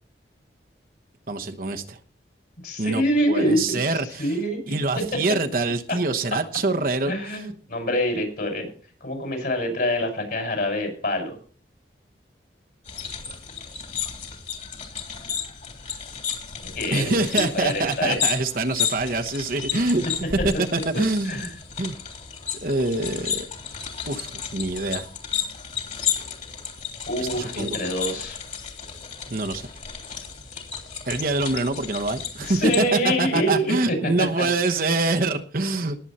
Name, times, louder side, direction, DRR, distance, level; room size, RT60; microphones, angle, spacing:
voice 1, 1.3-2.0 2.8-4.3 4.7-7.1 16.9-20.0 20.4-21.4 21.8-22.0 22.6-23.5 24.1-25.1 27.2-27.8 29.3-29.7 31.1-36.0, right 2 dB, 50° right, 5 dB, 1.1 m, -25 dB
voice 2, 2.6-4.8 7.0-8.7 9.0-11.4 16.7-18.2 19.7-19.8 21.3-21.5 27.1-28.4 32.4-34.5, equal, 55° left, 4 dB, 6.0 m, -26 dB
sound 1, 12.9-32.8, left 7 dB, 40° left, 3.2 m, -33 dB
19.0 x 8.0 x 4.3 m, 0.41 s
head